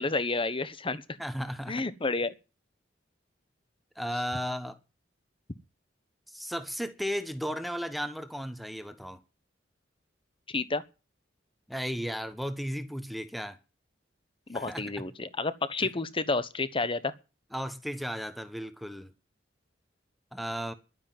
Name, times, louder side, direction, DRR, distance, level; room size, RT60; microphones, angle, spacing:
voice 1, 0.0-1.0 1.7-2.3 10.5-10.8 14.5-17.1, left 3 dB, 30° left, 1.1 m, -30 dB
voice 2, 1.2-1.8 4.0-4.8 6.3-9.2 11.7-13.6 14.5-14.8 17.5-19.1 20.3-20.7, equal, ahead, 1.3 m, -35 dB
12.0 x 9.7 x 9.3 m
head